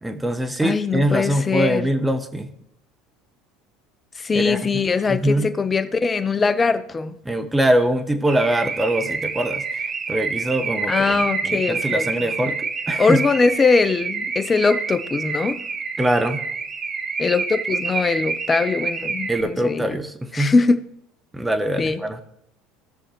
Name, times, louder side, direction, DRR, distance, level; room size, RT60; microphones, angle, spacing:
voice 1, 0.0-2.5 4.3-4.6 5.1-5.5 7.2-13.2 16.0-16.4 19.3-20.5 21.3-22.2, right 1 dB, 10° right, 1.1 m, -23 dB
voice 2, 0.6-1.9 4.2-7.1 10.9-12.3 13.0-15.6 17.2-19.8 20.3-20.7 21.8-22.0, left 4 dB, 25° left, 0.7 m, -21 dB
Car / Alarm, 8.3-19.4, right 4 dB, 35° right, 1.1 m, -28 dB
17.5 x 6.4 x 3.1 m
hypercardioid pair, 70°, 0 cm